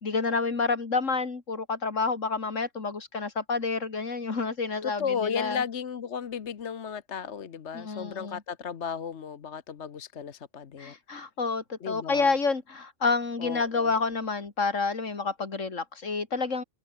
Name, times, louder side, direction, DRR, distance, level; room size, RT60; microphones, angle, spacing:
voice 1, 0.0-5.6 7.7-8.4 10.8-16.6, left 4 dB, 85° left, 2.9 m, -29 dB
voice 2, 4.8-10.9 11.8-12.3 13.4-14.0, left 7 dB, 65° left, 1.4 m, -34 dB
open air
omnidirectional pair, 1.3 m